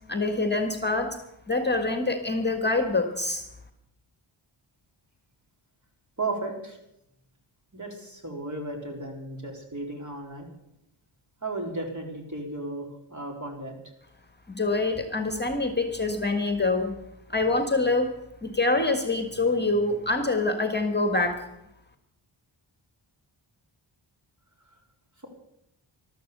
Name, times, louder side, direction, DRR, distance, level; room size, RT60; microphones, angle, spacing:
voice 1, 0.1-1.2 1.5-3.5 14.5-17.0 17.3-18.1 18.4-21.5, left 2 dB, 20° left, 6 dB, 1.6 m, -25 dB
voice 2, 6.2-6.8 7.7-10.5 11.4-13.8, right 2 dB, 35° right, 1 dB, 3.9 m, -34 dB
13.5 x 12.5 x 6.7 m, 0.82 s
cardioid pair, 65°, 49 cm